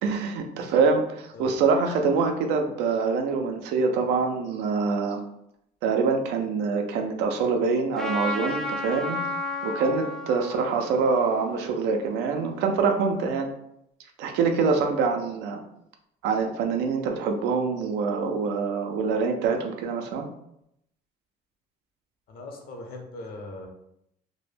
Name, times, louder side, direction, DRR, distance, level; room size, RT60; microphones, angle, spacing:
voice 1, 0.0-5.2 5.8-9.2 9.6-13.5 14.2-15.6 16.2-20.3, right 4 dB, 90° right, 4 dB, 0.4 m, -25 dB
Trumpet, 7.9-12.6, left 2 dB, 5° left, 0.4 m, -33 dB
voice 2, 22.3-23.7, left 2 dB, 65° left, 1 dB, 0.7 m, -40 dB
2.1 x 2.1 x 3.1 m, 0.77 s
cardioid pair, 110°, 17 cm